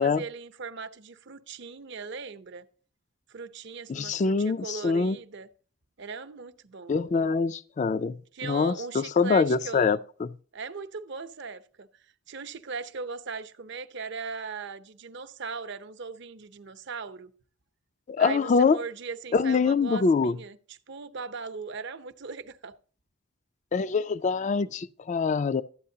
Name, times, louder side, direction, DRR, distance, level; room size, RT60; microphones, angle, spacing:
voice 1, 0.0-2.6 3.3-5.5 6.0-7.0 8.3-10.0 10.5-17.3 18.2-22.7, right 5 dB, 60° right, 0.7 m, -39 dB
voice 2, 3.9-5.2 6.9-10.3 18.1-18.8 19.3-20.4 23.7-25.6, left 5 dB, 35° left, 0.3 m, -24 dB
13.0 x 8.5 x 2.7 m
head